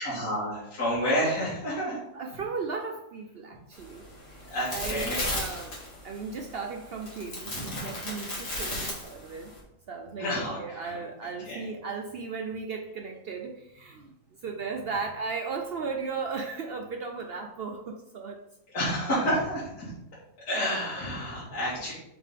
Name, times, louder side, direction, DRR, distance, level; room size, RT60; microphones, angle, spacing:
voice 1, 0.0-2.0 4.5-5.3 10.2-10.9 11.4-11.6 18.7-19.9 20.5-21.9, equal, 75° left, -10 dB, 2.5 m, -29 dB
voice 2, 2.1-4.0 4.3-4.5 4.7-5.8 6.0-9.5 9.9-14.1 14.4-18.4 21.0-21.4, right 4 dB, 70° right, 3 dB, 0.5 m, -36 dB
sound 1, 3.7-9.6, left 1 dB, 40° left, 2.3 m, -36 dB
6.9 x 4.0 x 3.6 m, 0.82 s
omnidirectional pair, 1.7 m